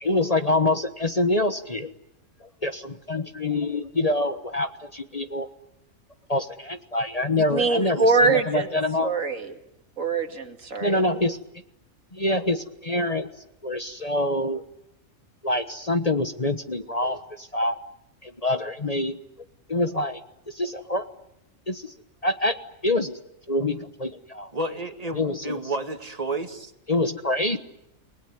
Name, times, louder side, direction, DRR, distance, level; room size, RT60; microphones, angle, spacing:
voice 1, 0.0-1.9 2.4-5.5 6.3-9.1 10.8-11.4 12.1-13.3 13.6-14.6 15.4-17.8 18.2-19.2 19.7-20.2 20.5-21.1 21.7-21.9 22.2-22.6 22.8-23.2 23.5-24.5 25.1-25.6 26.9-27.6, left 2 dB, 30° left, 9 dB, 1.3 m, -26 dB
voice 2, 7.3-8.7 9.0-9.5 10.0-11.0, right 3 dB, 75° right, 6 dB, 2.7 m, -23 dB
voice 3, 24.5-26.7, right 2 dB, 30° right, 8 dB, 2.1 m, -31 dB
29.5 x 20.0 x 9.5 m, 0.84 s
omnidirectional pair, 1.4 m